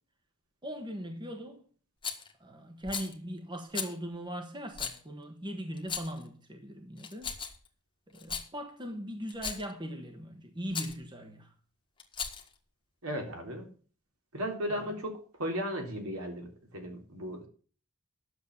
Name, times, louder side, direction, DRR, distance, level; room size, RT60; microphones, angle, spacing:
voice 1, 0.6-1.6 2.4-7.3 8.1-11.5 14.7-14.9, equal, 20° right, 1.3 m, -40 dB
Rattle, 2.0-2.3 2.8-3.1 3.7-3.9 4.7-5.0 5.8-6.2 7.0-7.7 8.1-8.5 9.3-9.7 10.7-11.0 12.0-12.5, left 6 dB, 20° left, 1.6 m, -37 dB
voice 2, 13.0-13.7 14.3-17.5, equal, 70° right, 3.4 m, -36 dB
10.5 x 7.3 x 7.0 m
head